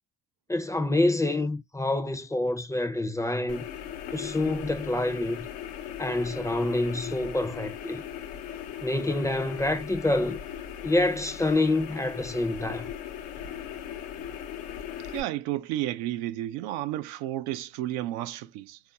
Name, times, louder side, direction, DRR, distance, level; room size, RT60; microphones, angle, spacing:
voice 1, 0.5-3.6 4.1-5.4 6.0-8.0 8.8-10.4 10.8-12.9, left 2 dB, 10° left, 0.5 m, -27 dB
sound 1, 3.5-15.2, left 9 dB, 85° left, 0.7 m, -38 dB
voice 2, 15.1-18.8, right 14 dB, 80° right, 0.5 m, -32 dB
3.4 x 2.5 x 2.7 m
supercardioid pair, 70°, 38 cm